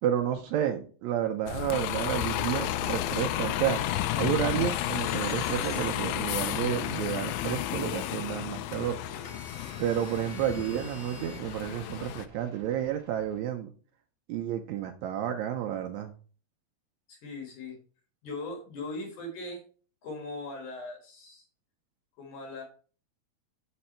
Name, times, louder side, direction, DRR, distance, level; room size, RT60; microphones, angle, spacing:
voice 1, 0.0-3.8 4.2-9.0 9.8-13.7 14.3-16.1, right 10 dB, 90° right, 5 dB, 1.5 m, -31 dB
Bus, 1.5-12.3, left 12 dB, 85° left, 1.8 m, -32 dB
sound 1, 4.3-5.8 7.5-13.4, right 3 dB, 35° right, 1.3 m, -51 dB
voice 2, 17.1-17.8 18.2-19.6 20.0-21.5 22.2-22.6, left 2 dB, 65° left, 2 dB, 2.8 m, -39 dB
6.7 x 5.3 x 4.2 m, 0.40 s
omnidirectional pair, 4.0 m